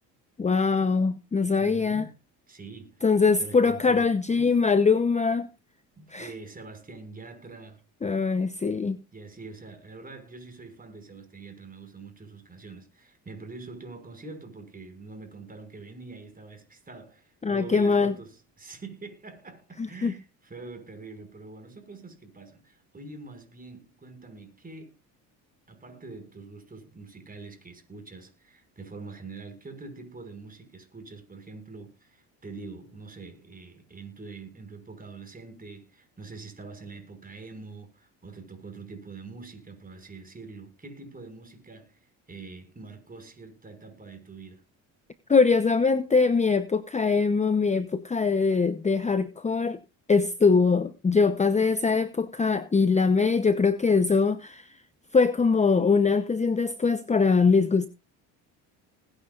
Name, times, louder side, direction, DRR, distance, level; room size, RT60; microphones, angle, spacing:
voice 1, 0.4-2.1 3.0-5.5 6.1-6.3 8.0-9.0 17.4-18.1 19.8-20.1 45.3-49.8 50.1-54.8 55.1-57.9, left 4 dB, 20° left, 0.8 m, -22 dB
voice 2, 1.6-2.2 2.5-3.1 3.4-4.6 6.0-7.8 9.1-25.0 25.7-44.6, right 3 dB, 20° right, 5.8 m, -44 dB
20.0 x 9.8 x 2.5 m
cardioid pair, 95°, 38 cm